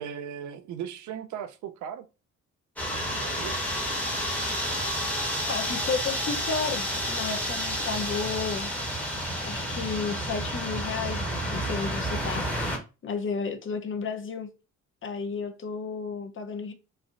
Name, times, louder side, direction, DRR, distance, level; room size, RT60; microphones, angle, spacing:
voice 1, 0.0-2.1 2.9-3.6, right 9 dB, 75° right, 0.5 m, -37 dB
sound 1, 2.8-12.8, equal, 5° left, 1.1 m, -30 dB
voice 2, 5.5-8.7 9.5-12.5 13.0-14.5 15.0-16.7, left 5 dB, 45° left, 0.7 m, -32 dB
3.1 x 2.5 x 2.5 m
cardioid pair, 90°, 30 cm